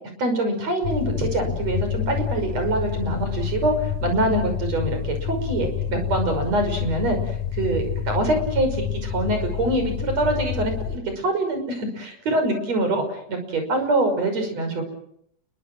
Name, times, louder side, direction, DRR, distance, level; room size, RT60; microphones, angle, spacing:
voice 1, 0.2-7.2 7.5-14.8, right 2 dB, 50° right, 6 dB, 6.9 m, -24 dB
sound 1, 0.8-11.0, left 9 dB, 55° left, 2.7 m, -28 dB
29.5 x 23.0 x 6.3 m, 0.72 s
omnidirectional pair, 3.7 m